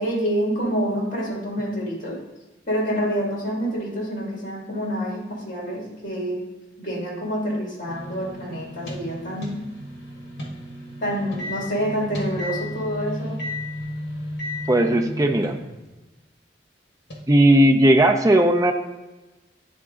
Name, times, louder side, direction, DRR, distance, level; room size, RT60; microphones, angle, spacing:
voice 1, 0.0-2.1 2.7-6.4 6.8-9.5 11.0-13.4, equal, 45° left, -3 dB, 2.4 m, -27 dB
sound 1, 7.9-16.0 17.1-17.2, left 1 dB, 65° left, 1.4 m, -34 dB
voice 2, 14.7-15.6 17.3-18.7, right 1 dB, 20° right, 4 dB, 0.5 m, -17 dB
9.7 x 3.6 x 3.7 m, 1.1 s
head